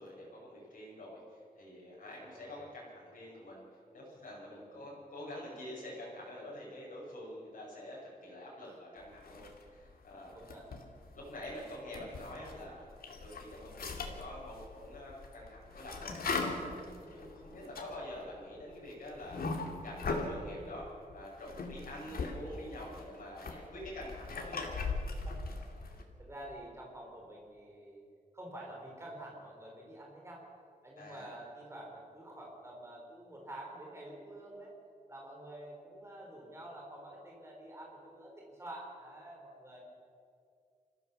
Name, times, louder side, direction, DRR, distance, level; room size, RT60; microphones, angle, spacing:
voice 1, 0.0-3.6 3.9-10.3 11.1-19.5 19.8-20.9 21.1-24.8 31.0-31.3, left 1 dB, 60° left, -6 dB, 6.2 m, -47 dB
voice 2, 2.0-2.6 4.5-4.9 8.6-8.8 10.3-10.7 25.2-28.0 28.3-30.4 30.8-34.7 35.1-39.8, right 1 dB, 20° right, -2 dB, 4.4 m, -49 dB
sound 1, 9.2-9.9 10.3-12.6 13.0-20.4 21.1-22.3 22.6-26.0, left 3 dB, 85° left, 2.5 m, -40 dB
27.5 x 14.5 x 7.1 m, 2.4 s
wide cardioid pair, 175°, 15 cm